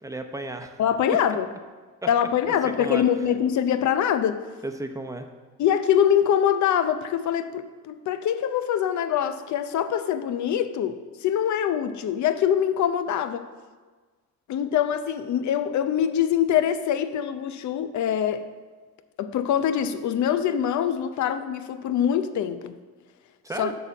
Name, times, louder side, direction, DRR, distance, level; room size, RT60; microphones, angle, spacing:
voice 1, 0.0-0.8 2.6-3.0 4.6-5.3 23.4-23.7, right 2 dB, 10° right, 5 dB, 0.8 m, -33 dB
voice 2, 0.8-1.5 2.1-4.4 5.6-13.5 14.5-18.4 19.2-22.7 23.6-23.7, left 9 dB, 70° left, 11 dB, 0.7 m, -24 dB
6.9 x 5.4 x 7.1 m, 1.4 s
cardioid pair, 90°, 30 cm